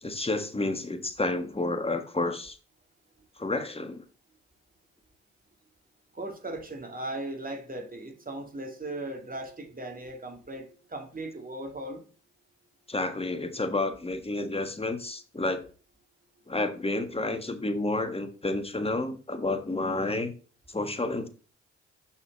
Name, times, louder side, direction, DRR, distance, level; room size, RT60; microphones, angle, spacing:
voice 1, 0.0-2.6 3.4-4.0 12.9-15.7 16.5-20.3 20.7-21.3, left 2 dB, 15° left, 1.6 m, -30 dB
voice 2, 6.1-12.0, right 2 dB, 25° right, 2.4 m, -38 dB
6.4 x 5.6 x 4.1 m
hypercardioid pair, 45°, 34 cm